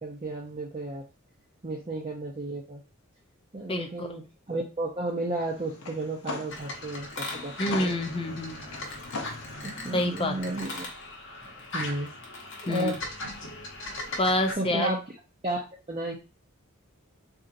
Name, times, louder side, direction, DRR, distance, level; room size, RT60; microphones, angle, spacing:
voice 1, 0.0-1.0 1.6-2.8 3.5-7.5 7.8-7.9 9.6-10.9 11.4-12.1 12.6-13.0 14.1-14.2 14.6-15.0 15.4-16.1, right 2 dB, 30° right, -2 dB, 0.6 m, -33 dB
voice 2, 3.7-4.1 7.6-8.6 9.9-10.4 12.7-13.0 14.2-14.9, left 1 dB, 25° left, 5 dB, 0.5 m, -27 dB
sound 1, 5.4-10.9, left 3 dB, 90° left, 0.9 m, -41 dB
sound 2, 6.5-14.5, left 2 dB, 60° left, 0.9 m, -38 dB
4.1 x 2.7 x 2.5 m, 0.30 s
head